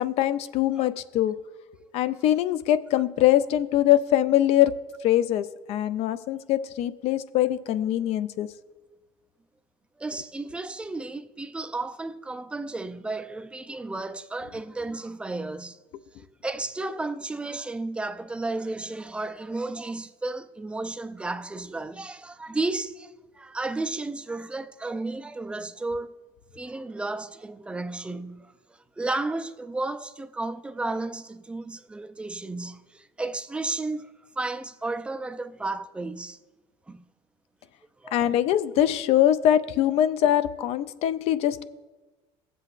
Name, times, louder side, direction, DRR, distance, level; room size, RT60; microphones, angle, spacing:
voice 1, 0.0-1.3 1.9-4.7 5.0-8.5 38.1-41.6, left 12 dB, 55° left, 0.5 m, -23 dB
voice 2, 10.0-15.8 16.2-26.1 26.5-28.5 29.0-36.4 36.9-37.0 38.0-38.2, right 2 dB, 10° right, 0.4 m, -33 dB
17.5 x 7.6 x 2.5 m
supercardioid pair, 120°, 13 cm